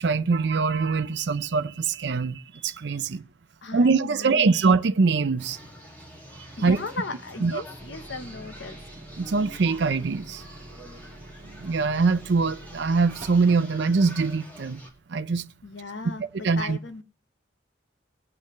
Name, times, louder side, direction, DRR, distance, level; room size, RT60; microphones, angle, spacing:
voice 1, 0.0-3.2 3.7-5.6 6.6-6.8 7.4-7.6 9.2-10.4 11.6-14.8 15.1-15.4 16.4-16.8, right 4 dB, 65° right, 0.5 m, -23 dB
voice 2, 3.6-4.7 6.6-8.8 15.6-17.0, left 3 dB, 75° left, 1.1 m, -36 dB
sound 1, 5.4-14.9, equal, 10° left, 2.2 m, -46 dB
sound 2, 7.8-13.5, right 1 dB, 40° right, 1.7 m, -46 dB
20.0 x 8.4 x 3.2 m
head